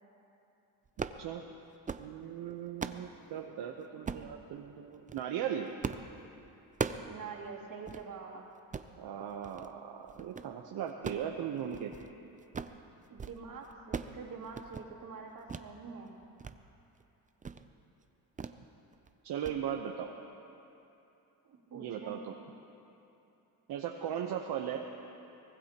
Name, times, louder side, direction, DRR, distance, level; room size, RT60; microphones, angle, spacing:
sound 1, 0.9-1.2 1.7-2.1 2.5-3.1 4.1-4.3 4.9-5.3 5.8-6.1 6.4-7.1 7.5-7.6 7.9-8.0 8.6-8.9 9.4-9.7 10.1-10.5 10.9-12.1 12.4-12.8 13.1-13.4 13.6-14.2 14.5-14.9 15.5-15.7 16.1-16.6 16.9-17.0 17.4-17.7 18.4-18.6 18.9-19.1 19.4-19.6, right 5 dB, 20° right, 0.5 m, -39 dB
voice 1, 2.0-5.7 9.0-11.9 19.2-20.1 21.7-22.4 23.7-24.9, right 9 dB, 75° right, 2 dB, 1.0 m, -38 dB
voice 2, 7.0-8.4 13.1-16.2 21.5-22.2, right 5 dB, 55° right, -3 dB, 3.0 m, -45 dB
24.0 x 20.0 x 3.0 m, 2.8 s
cardioid pair, 110°, 39 cm